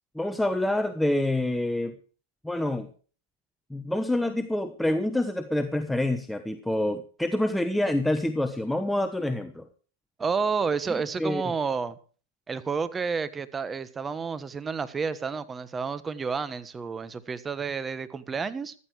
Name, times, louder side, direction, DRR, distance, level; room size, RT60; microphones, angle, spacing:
voice 1, 0.1-2.0 2.4-2.9 3.7-9.6 11.2-11.4, left 1 dB, 5° left, 1.1 m, -27 dB
voice 2, 10.2-12.0 12.5-18.7, right 5 dB, 15° right, 1.3 m, -30 dB
15.0 x 14.0 x 4.8 m
hypercardioid pair, 135°, 0 cm